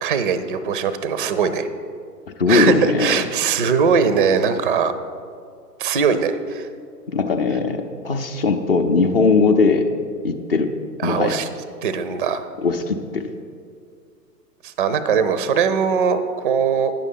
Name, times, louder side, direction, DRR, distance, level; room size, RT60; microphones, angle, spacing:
voice 1, 0.0-1.7 2.5-4.9 5.8-6.7 11.0-11.5 11.8-12.5 14.6-16.9, right 6 dB, 35° right, 12 dB, 0.4 m, -20 dB
voice 2, 2.4-3.2 7.1-9.9 10.2-10.7 11.0-11.4 12.6-13.3, left 4 dB, 35° left, 7 dB, 0.6 m, -19 dB
9.3 x 6.8 x 5.4 m, 2.2 s
figure-of-eight pair, 125°, 49 cm